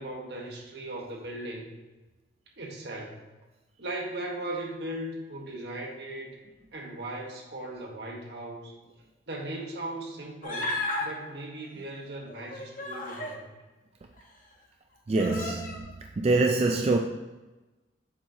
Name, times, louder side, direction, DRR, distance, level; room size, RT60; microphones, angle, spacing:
voice 1, 0.0-1.7 2.6-3.3 3.8-6.4 6.7-8.7 9.3-13.5 15.4-15.5, right 1 dB, 70° right, 1.2 m, -38 dB
Human voice, 10.4-11.1 12.3-13.4 14.2-14.3 15.1-15.8, left 2 dB, 50° left, 1.0 m, -33 dB
voice 2, 15.1-15.9 16.2-17.0, right 3 dB, 35° right, 0.3 m, -24 dB
7.3 x 6.2 x 2.7 m
head